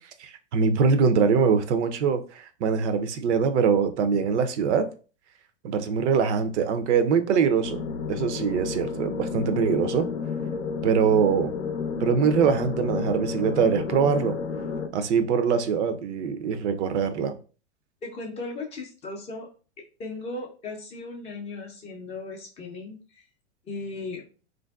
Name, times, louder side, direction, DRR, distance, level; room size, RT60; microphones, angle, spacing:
voice 1, 0.2-4.9 5.6-7.8 8.1-10.1 10.8-11.5 12.0-14.4 14.9-17.3, right 6 dB, 70° right, 0.5 m, -23 dB
sound 1, 7.6-14.9, left 5 dB, 90° left, 0.6 m, -31 dB
voice 2, 18.0-19.5 20.0-23.2 23.7-24.2, left 3 dB, 20° left, 0.4 m, -37 dB
3.2 x 2.6 x 2.2 m
hypercardioid pair, 125°, 36 cm